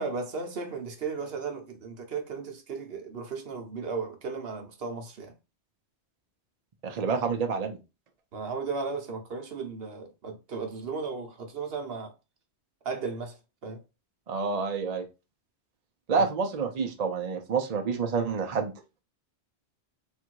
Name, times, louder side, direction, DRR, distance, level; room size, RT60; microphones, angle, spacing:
voice 1, 0.0-5.3 8.3-12.1 12.8-13.8 16.1-16.3, right 4 dB, 65° right, 1.0 m, -35 dB
voice 2, 6.8-7.8 14.3-15.1 16.1-18.7, right 5 dB, 45° right, 0.6 m, -28 dB
3.6 x 2.5 x 4.5 m
omnidirectional pair, 1.1 m